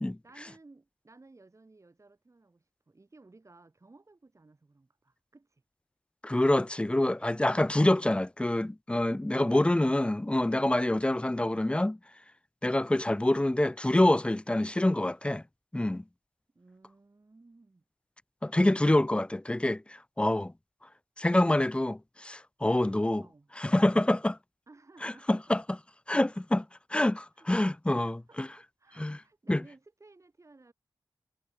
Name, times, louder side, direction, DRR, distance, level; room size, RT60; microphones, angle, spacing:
voice 1, 0.2-5.6 16.5-17.8 23.2-23.5 24.7-25.4 27.3-27.5 27.9-30.7, right 3 dB, 35° right, 6.7 m, -58 dB
voice 2, 6.2-12.0 12.6-15.4 15.7-16.0 18.4-20.5 21.2-23.3 23.6-24.4 25.0-25.8 26.1-26.7 26.9-28.5 29.0-29.2 29.5-29.6, left 1 dB, 15° left, 0.6 m, -26 dB
wide cardioid pair, 75°, 8 cm